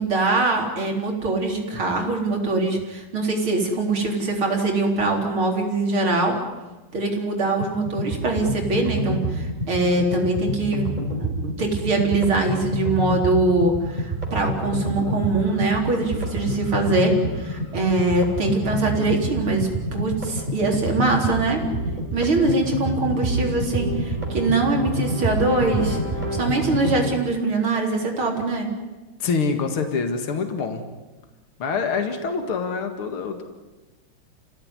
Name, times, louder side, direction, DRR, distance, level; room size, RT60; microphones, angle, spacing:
voice 1, 0.0-6.3 6.9-10.9 11.1-21.6 22.1-26.0 26.3-28.7, right 2 dB, 75° right, 2 dB, 4.8 m, -23 dB
sound 1, 7.6-27.1, right 1 dB, 20° right, 4.5 m, -27 dB
voice 2, 29.2-30.8 31.6-33.4, left 5 dB, 80° left, 6 dB, 2.9 m, -25 dB
30.0 x 17.0 x 9.8 m, 1.1 s
omnidirectional pair, 2.3 m